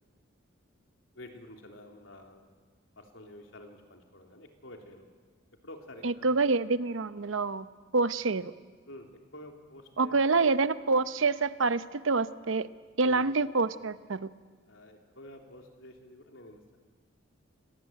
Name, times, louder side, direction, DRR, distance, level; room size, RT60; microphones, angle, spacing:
voice 1, 1.1-2.5 2.9-5.1 5.6-6.4 8.8-10.2 13.0-13.3 14.7-16.8, left 1 dB, 80° left, 3 dB, 3.4 m, -49 dB
voice 2, 6.0-7.7 7.9-8.5 10.0-12.7 13.0-14.3, right 3 dB, 85° right, 14 dB, 0.8 m, -27 dB
28.0 x 18.5 x 9.2 m, 1.6 s
head